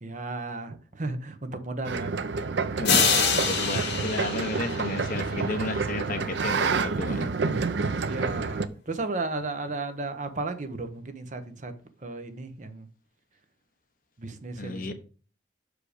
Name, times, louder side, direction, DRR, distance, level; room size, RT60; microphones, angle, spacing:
voice 1, 0.0-2.8 3.6-3.7 8.0-11.7 12.0-12.9 14.2-14.9, right 2 dB, 40° right, 0.8 m, -34 dB
sound 1, 1.9-8.7, right 4 dB, 70° right, 0.5 m, -29 dB
sound 2, 2.8-5.7, left 5 dB, 65° left, 2.2 m, -26 dB
voice 2, 2.8-7.7 14.6-14.9, left 2 dB, 50° left, 0.9 m, -33 dB
6.5 x 5.0 x 4.9 m
head